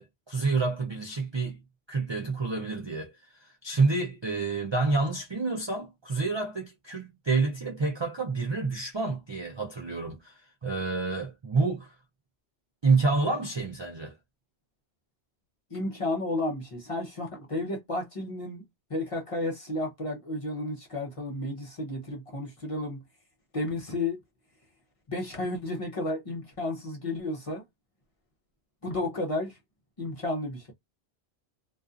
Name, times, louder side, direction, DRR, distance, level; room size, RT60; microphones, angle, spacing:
voice 1, 0.0-1.6 1.9-11.9 12.8-14.2, right 3 dB, 40° right, 0.4 m, -28 dB
voice 2, 15.7-18.6 18.9-23.0 23.5-24.2 25.1-27.6 28.8-29.6 30.0-30.7, left 2 dB, 40° left, 0.6 m, -32 dB
2.5 x 2.4 x 2.3 m
omnidirectional pair, 1.1 m